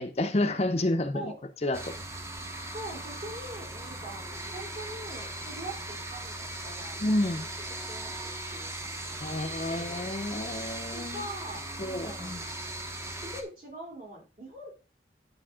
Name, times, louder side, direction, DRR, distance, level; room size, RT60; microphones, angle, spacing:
voice 1, 0.0-1.3 1.6-1.9 7.0-7.4 9.2-11.2 11.8-12.4, left 1 dB, 35° left, 0.6 m, -29 dB
sound 1, 1.7-13.4, right 1 dB, 15° right, 0.9 m, -38 dB
voice 2, 1.9-2.2 2.7-9.4 9.7-10.6 10.9-12.7 13.1-14.7, right 1 dB, 50° right, 3.3 m, -44 dB
10.0 x 5.2 x 3.6 m
head